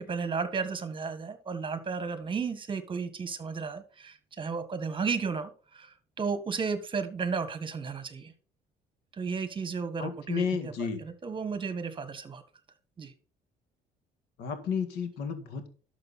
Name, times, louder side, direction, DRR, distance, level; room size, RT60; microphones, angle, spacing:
voice 1, 0.0-5.9 6.2-8.3 9.1-10.7 11.2-12.4 13.0-13.1, right 5 dB, 30° right, 11 dB, 1.6 m, -33 dB
voice 2, 10.0-11.0 14.4-15.7, left 6 dB, 85° left, 8 dB, 2.0 m, -32 dB
12.0 x 6.6 x 4.2 m, 0.39 s
cardioid pair, 110°, 17 cm